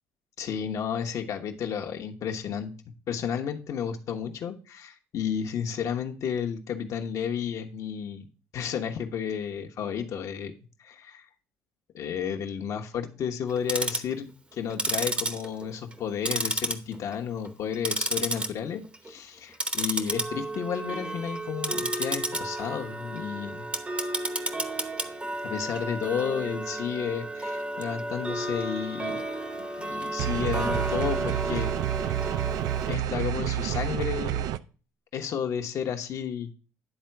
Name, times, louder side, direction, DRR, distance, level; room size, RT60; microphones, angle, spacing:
voice 1, 0.4-2.7 3.1-8.3 8.5-10.5 10.8-11.3 11.9-23.7 25.4-29.2 29.5-32.2 32.9-34.5 35.1-36.6, left 8 dB, 60° left, 4 dB, 1.1 m, -32 dB
Tick-tock, 13.5-14.1 14.7-16.0 16.3-17.1 17.5-18.5 18.8-19.1 19.5-32.9, right 2 dB, 20° right, 0.8 m, -32 dB
sound 1, 30.2-34.6, right 12 dB, 75° right, 0.4 m, -29 dB
10.0 x 3.7 x 4.5 m, 0.36 s
supercardioid pair, 85°, 6 cm